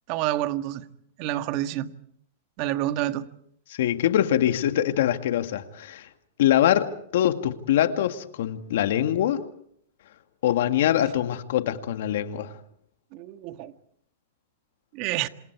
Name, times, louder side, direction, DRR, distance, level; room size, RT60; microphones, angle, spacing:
voice 1, 0.1-0.9 1.2-1.9 2.6-3.3 13.1-13.7 14.9-15.3, right 14 dB, 45° right, 1.7 m, -28 dB
voice 2, 3.7-6.1 6.4-9.4 10.4-12.5, left 11 dB, 70° left, 2.1 m, -23 dB
27.5 x 27.5 x 4.8 m
hypercardioid pair, 130°, 0 cm